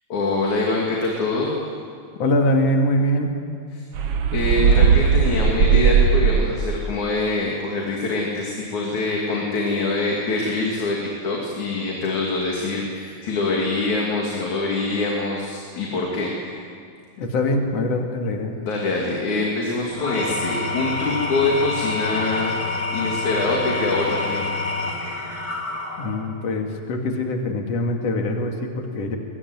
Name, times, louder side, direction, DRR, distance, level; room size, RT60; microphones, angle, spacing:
voice 1, 0.1-1.6 3.8-3.9 4.3-16.4 18.6-22.5 22.9-24.5, left 2 dB, 80° left, -2 dB, 4.1 m, -24 dB
voice 2, 2.2-3.3 17.2-18.5 26.0-29.2, left 1 dB, 60° left, 2 dB, 3.4 m, -23 dB
sound 1, 3.9-6.7, right 6 dB, 60° right, 2.0 m, -17 dB
Engine / Tools, 19.9-26.3, left 3 dB, 25° left, 2.7 m, -27 dB
23.0 x 21.5 x 9.5 m, 2.3 s
omnidirectional pair, 3.3 m